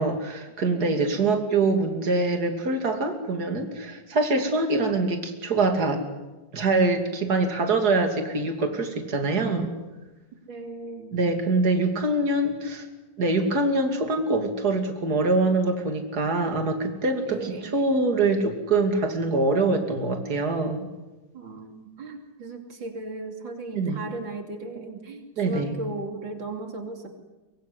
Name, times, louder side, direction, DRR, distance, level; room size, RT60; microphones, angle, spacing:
voice 1, 0.0-6.0 6.5-9.7 11.1-12.9 13.2-20.9 23.7-24.0 25.4-25.7, right 3 dB, 55° right, 5 dB, 3.3 m, -24 dB
voice 2, 0.8-1.2 10.5-11.2 17.2-17.7 21.3-27.1, right 2 dB, 90° right, 4 dB, 3.7 m, -37 dB
24.0 x 23.5 x 9.8 m, 1.1 s
omnidirectional pair, 2.0 m